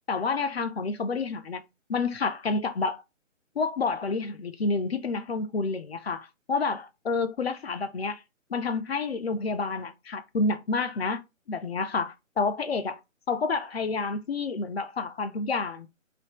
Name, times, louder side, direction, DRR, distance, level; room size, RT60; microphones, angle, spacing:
voice 1, 0.1-1.6 1.9-3.0 3.6-8.2 8.5-11.2 11.5-13.0 13.3-15.9, left 4 dB, 50° left, 0.5 m, -29 dB
3.4 x 2.6 x 2.9 m
figure-of-eight pair, 150°, 39 cm